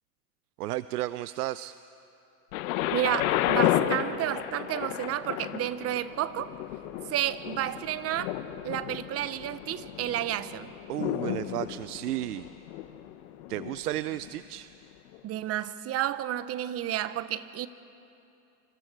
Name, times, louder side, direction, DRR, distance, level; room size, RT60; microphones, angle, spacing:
voice 1, 0.6-1.7 10.9-12.5 13.5-14.7, right 15 dB, 85° right, 16 dB, 0.6 m, -33 dB
Thunder, 2.5-14.4 15.1-15.2, left 12 dB, 65° left, 1.3 m, -32 dB
voice 2, 2.9-6.5 7.1-8.3 8.6-10.8 15.2-17.7, right 12 dB, 30° right, 15 dB, 0.9 m, -31 dB
29.0 x 26.0 x 4.7 m, 2.8 s
hypercardioid pair, 110°, 45 cm